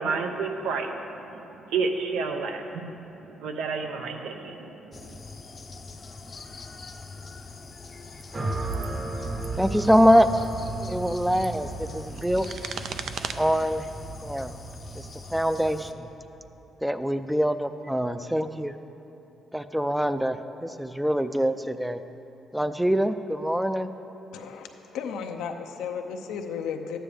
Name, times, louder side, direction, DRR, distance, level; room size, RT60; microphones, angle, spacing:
voice 1, 0.0-5.2, right 4 dB, 85° right, 4 dB, 0.8 m, -31 dB
sound 1, 4.9-15.9, left 3 dB, 35° left, 0.6 m, -43 dB
sound 2, 8.1-8.2 8.7-8.9 9.3-9.5 10.3-10.5 11.1-13.3, right 6 dB, 65° right, 0.5 m, -38 dB
sound 3, 8.3-16.6, right 3 dB, 30° right, 0.9 m, -35 dB
voice 2, 9.6-10.4 10.8-12.5 13.4-13.9 14.2-14.5 14.9-16.1 16.8-18.7 19.5-20.4 20.6-22.0 22.5-23.9, equal, 5° right, 10 dB, 0.4 m, -24 dB
voice 3, 24.3-27.0, left 6 dB, 90° left, 5 dB, 0.7 m, -34 dB
12.5 x 8.9 x 3.5 m, 2.9 s
cardioid pair, 90°, 0 cm